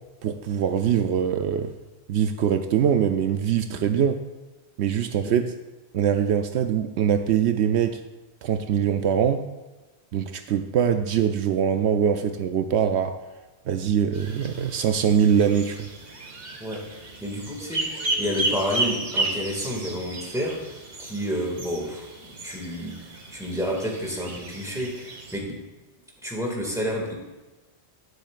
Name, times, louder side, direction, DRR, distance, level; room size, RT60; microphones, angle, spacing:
voice 1, 0.2-1.7 2.1-4.2 4.8-5.4 5.9-8.0 8.4-9.4 10.1-13.2 13.7-15.9, right 8 dB, 75° right, 7 dB, 0.8 m, -23 dB
sound 1, 14.1-25.4, right 2 dB, 60° right, 1.5 m, -33 dB
voice 2, 17.2-23.0 23.3-25.5 26.2-27.1, equal, 5° right, -2 dB, 2.0 m, -30 dB
11.5 x 10.5 x 2.5 m, 1.2 s
omnidirectional pair, 1.1 m